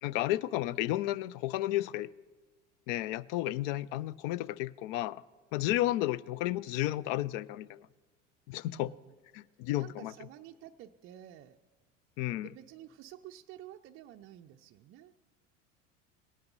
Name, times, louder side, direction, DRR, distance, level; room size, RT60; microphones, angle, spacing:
voice 1, 0.0-2.1 2.9-5.2 5.5-7.9 8.5-8.9 9.3-10.1 12.2-12.5, left 15 dB, 45° left, 21 dB, 0.4 m, -32 dB
voice 2, 8.7-9.1 9.8-11.6 12.4-15.1, right 12 dB, 35° right, 5 dB, 0.5 m, -51 dB
18.0 x 9.4 x 5.3 m, 1.4 s
figure-of-eight pair, 70°, 38 cm